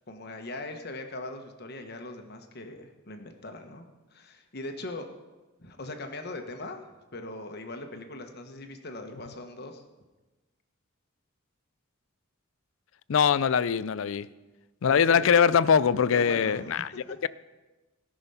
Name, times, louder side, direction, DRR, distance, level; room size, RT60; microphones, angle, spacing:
voice 1, 0.1-3.9 4.1-5.1 5.6-9.8 14.8-15.2 16.1-17.0, left 2 dB, 50° left, 1.2 m, -40 dB
voice 2, 13.1-14.3 14.8-16.9 17.2-17.3, left 7 dB, 70° left, 0.4 m, -22 dB
17.5 x 6.2 x 5.6 m
head